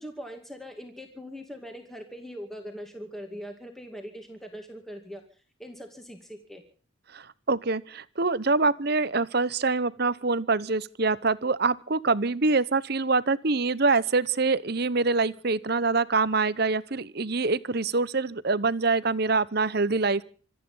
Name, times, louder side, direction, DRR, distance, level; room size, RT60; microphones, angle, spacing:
voice 1, 0.0-5.2 5.6-6.6, equal, ahead, 3 dB, 2.4 m, -41 dB
voice 2, 7.1-20.2, right 3 dB, 50° right, 16 dB, 0.9 m, -25 dB
26.5 x 9.3 x 5.7 m, 0.43 s
head